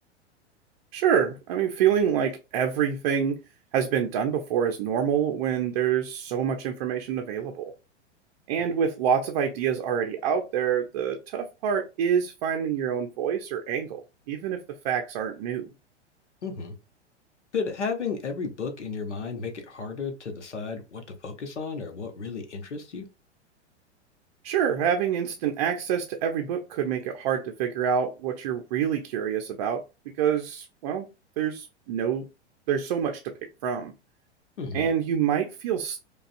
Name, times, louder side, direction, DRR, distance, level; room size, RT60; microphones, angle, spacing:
voice 1, 0.9-3.4 3.7-7.7 8.5-15.7 24.4-29.8 30.1-31.1 31.4-32.3 32.7-33.3 33.6-33.9 34.7-36.0, right 8 dB, 40° right, 4 dB, 0.5 m, -26 dB
voice 2, 16.4-16.7 17.5-23.1 34.6-34.9, left 5 dB, 75° left, 5 dB, 1.0 m, -33 dB
4.9 x 2.4 x 2.4 m, 0.27 s
figure-of-eight pair, 100°, 35 cm